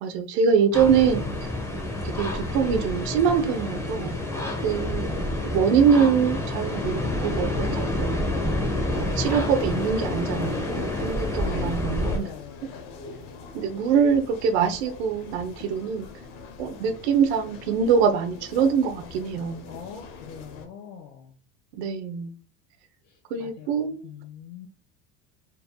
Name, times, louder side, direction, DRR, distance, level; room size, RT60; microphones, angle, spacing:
voice 1, 0.0-1.5 2.0-4.1 4.6-5.1 5.4-8.2 8.9-12.2 13.5-16.1 16.6-19.7 21.7-22.3 23.3-24.1, right 6 dB, 80° right, 6 dB, 1.0 m, -24 dB
sound 1, 0.7-12.2, left 1 dB, 10° left, 0.9 m, -28 dB
voice 2, 4.9-5.7 11.9-12.8 19.7-21.4 23.0-24.7, left 7 dB, 75° left, -1 dB, 1.3 m, -43 dB
sound 2, 8.9-20.7, left 4 dB, 50° left, 1.0 m, -42 dB
4.5 x 3.6 x 2.3 m, 0.35 s
cardioid pair, 160°, 33 cm